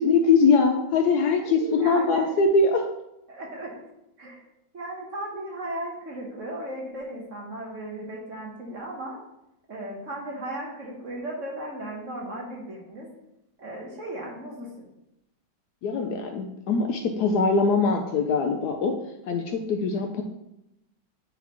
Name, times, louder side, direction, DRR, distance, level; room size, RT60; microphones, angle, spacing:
voice 1, 0.0-2.9 15.8-19.0 19.3-20.2, left 4 dB, 70° left, 4 dB, 1.0 m, -22 dB
voice 2, 1.4-2.4 3.3-3.8 4.2-4.4 4.7-9.2 9.7-13.1 13.6-14.7, right 1 dB, 50° right, -2 dB, 1.2 m, -36 dB
8.2 x 3.9 x 2.9 m, 0.86 s
omnidirectional pair, 2.0 m